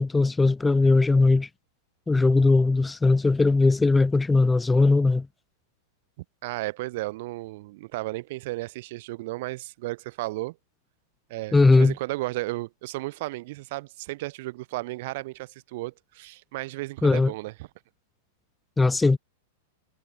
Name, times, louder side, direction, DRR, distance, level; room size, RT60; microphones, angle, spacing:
voice 1, 0.0-1.5 2.1-5.3 11.5-11.9 17.0-17.3 18.8-19.2, left 3 dB, 10° left, 0.7 m, -19 dB
voice 2, 6.4-10.6 11.3-17.7, right 20 dB, 55° right, 2.2 m, -34 dB
figure-of-eight pair, 95°, 0 cm